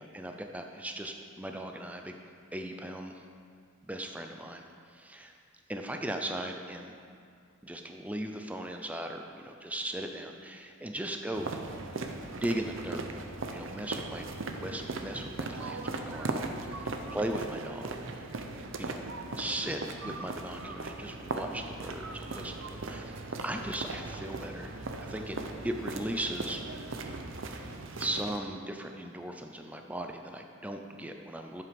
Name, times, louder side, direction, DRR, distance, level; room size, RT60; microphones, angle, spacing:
voice 1, 0.0-2.2 2.5-3.2 3.8-5.3 5.7-7.0 7.6-11.5 12.3-13.2 13.5-14.3 14.6-16.4 16.7-18.4 18.8-19.0 19.3-25.4 25.6-26.6 28.0-31.6, right 1 dB, 5° right, 4 dB, 0.5 m, -38 dB
sound 1, 11.3-28.4, right 3 dB, 65° right, 0.7 m, -38 dB
11.0 x 7.6 x 5.3 m, 2.3 s
head